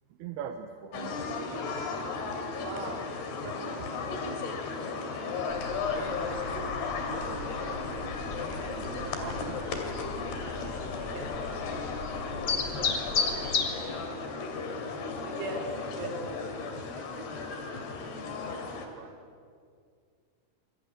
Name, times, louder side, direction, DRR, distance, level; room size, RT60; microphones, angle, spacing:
voice 1, 0.1-1.3 2.2-2.3 7.3-7.4 8.5-8.7 18.5-19.1, right 8 dB, 85° right, 6 dB, 3.0 m, -42 dB
sound 1, 0.9-18.9, left 4 dB, 85° left, 4.5 m, -35 dB
voice 2, 2.2-6.7 7.0-7.8 8.5-11.3 11.7-14.5 15.2-16.2 16.5-17.4, right 3 dB, 65° right, 0 dB, 5.7 m, -45 dB
sound 2, 5.5-13.8, left 5 dB, 40° left, 2.2 m, -35 dB
26.5 x 22.0 x 9.6 m, 2.2 s
omnidirectional pair, 4.5 m